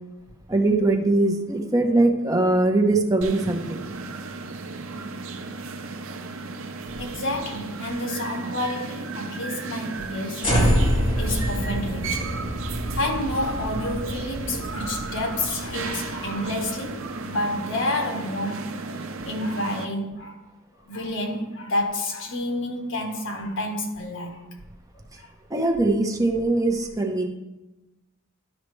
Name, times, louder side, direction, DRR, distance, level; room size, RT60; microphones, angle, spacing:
voice 1, 0.5-3.9 25.5-27.3, right 2 dB, 15° right, 1.0 m, -21 dB
sound 1, 3.2-19.8, right 4 dB, 70° right, 0.7 m, -35 dB
voice 2, 7.0-10.5 11.2-12.3 12.6-18.8 19.2-20.3 20.8-24.4 25.2-25.3, left 1 dB, 65° left, 1.4 m, -29 dB
sound 2, 10.4-16.7, equal, 25° left, 2.2 m, -26 dB
12.0 x 5.8 x 3.3 m
head